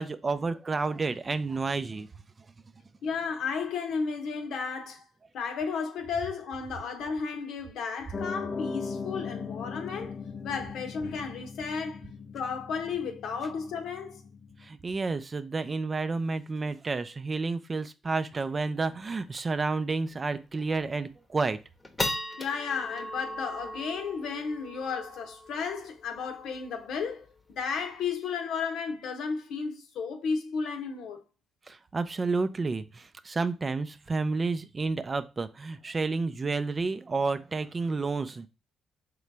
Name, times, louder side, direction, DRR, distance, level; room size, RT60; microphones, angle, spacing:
voice 1, 0.0-2.1 14.6-21.6 31.7-38.5, right 3 dB, 30° right, 0.4 m, -30 dB
voice 2, 3.0-5.1 5.3-10.2 10.4-12.0 12.3-14.2 22.4-31.2, left 5 dB, 75° left, 0.9 m, -33 dB
Piano, 8.1-14.7, left 5 dB, 35° left, 0.4 m, -39 dB
sound 1, 18.5-18.6 18.8-18.9 19.3-19.6 20.1-20.2 20.7-21.1 21.5-28.1, left 1 dB, 20° left, 0.8 m, -38 dB
3.8 x 3.2 x 3.3 m
cardioid pair, 90°, 0 cm